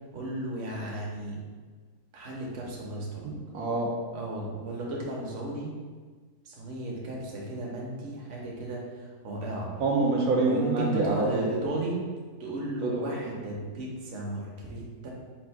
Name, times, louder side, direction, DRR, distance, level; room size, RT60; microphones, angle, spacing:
voice 1, 0.1-1.4 2.1-3.3 4.1-5.8 6.4-9.7 10.4-12.0 12.4-15.1, right 2 dB, 50° right, -3 dB, 1.0 m, -35 dB
voice 2, 3.2-3.9 9.8-11.5 12.8-13.0, right 3 dB, 75° right, -3 dB, 1.1 m, -26 dB
4.2 x 2.4 x 4.6 m, 1.5 s
omnidirectional pair, 1.7 m